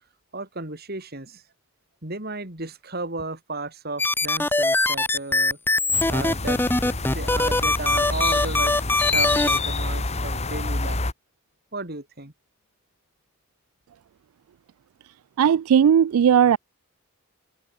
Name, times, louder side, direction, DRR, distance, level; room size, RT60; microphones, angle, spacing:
voice 1, 0.3-1.4 2.0-5.6 6.1-8.8 9.1-11.0 11.7-12.3, right 2 dB, 45° right, 3.6 m, -34 dB
sound 1, 4.0-9.6, left 2 dB, 10° left, 0.7 m, -21 dB
sound 2, 5.9-11.1, left 3 dB, 30° left, 1.7 m, -28 dB
voice 2, 15.4-16.6, right 8 dB, 80° right, 0.3 m, -17 dB
open air
head